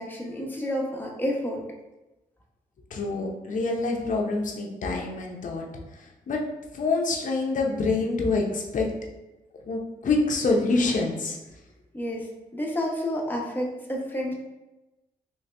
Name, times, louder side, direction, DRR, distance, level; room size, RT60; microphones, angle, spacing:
voice 1, 0.0-1.6 11.9-14.3, equal, 10° left, -2 dB, 0.9 m, -30 dB
voice 2, 2.9-5.6 6.3-6.4 6.7-8.9 9.7-11.4, left 3 dB, 55° left, 1 dB, 0.7 m, -26 dB
3.1 x 2.7 x 3.3 m, 1.0 s
cardioid pair, 60°, 16 cm